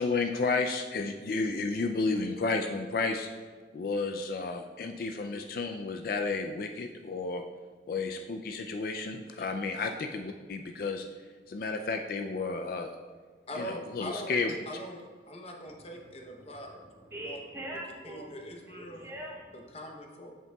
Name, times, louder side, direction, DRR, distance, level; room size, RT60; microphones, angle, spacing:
voice 1, 0.0-3.3 3.7-7.4 7.9-11.1 11.5-12.9 13.5-14.6, left 3 dB, 50° left, 5 dB, 0.3 m, -32 dB
voice 2, 13.5-14.4 14.7-16.8 17.2-17.4 18.0-19.1 19.7-20.3, equal, 35° left, 1 dB, 0.8 m, -42 dB
voice 3, 16.8-18.4 18.7-19.7, right 1 dB, 15° right, -1 dB, 0.8 m, -43 dB
8.1 x 7.3 x 2.3 m, 1.5 s
head